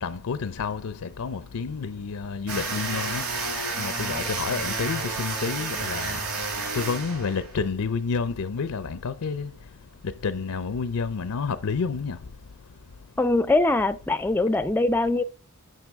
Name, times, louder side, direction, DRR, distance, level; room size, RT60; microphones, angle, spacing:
voice 1, 0.0-3.2 3.8-6.2 6.7-9.5 10.2-12.2, left 5 dB, 80° left, 0.5 m, -29 dB
sound 1, 2.5-7.6, right 3 dB, 90° right, 3.1 m, -30 dB
voice 2, 13.2-15.2, left 2 dB, 10° left, 0.4 m, -22 dB
9.2 x 5.9 x 3.5 m
head